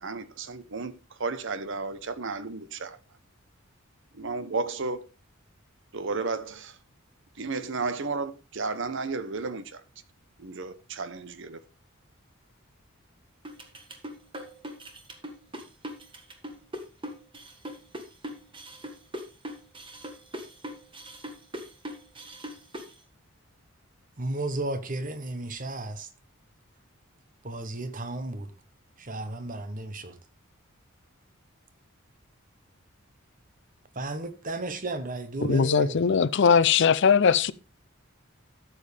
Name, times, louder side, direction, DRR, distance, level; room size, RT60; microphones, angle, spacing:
voice 1, 0.0-0.9 1.2-3.0 4.2-5.0 5.9-6.7 7.4-9.8 10.4-11.6, right 3 dB, 60° right, 0.9 m, -33 dB
sound 1, 13.4-22.9, equal, 25° right, 1.5 m, -40 dB
voice 2, 24.2-26.1 27.4-28.5 29.0-30.1 34.0-35.9, right 2 dB, 40° right, 1.1 m, -33 dB
voice 3, 35.4-37.5, left 6 dB, 55° left, 0.5 m, -20 dB
12.5 x 7.4 x 3.4 m
head